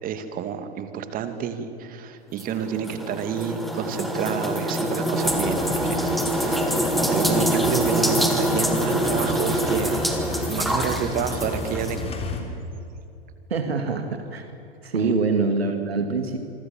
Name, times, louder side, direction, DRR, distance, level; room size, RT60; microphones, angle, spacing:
voice 1, 0.0-10.1 10.5-12.2 14.9-15.1, right 7 dB, 25° right, 9 dB, 2.4 m, -30 dB
sound 1, 2.4-12.0, right 1 dB, ahead, 2.9 m, -24 dB
sound 2, 5.2-12.4, left 3 dB, 20° left, 3.5 m, -35 dB
voice 2, 13.5-14.5 14.8-16.4, right 4 dB, 70° right, 6 dB, 2.3 m, -24 dB
27.5 x 24.5 x 7.4 m, 2.7 s
figure-of-eight pair, 100°, 32 cm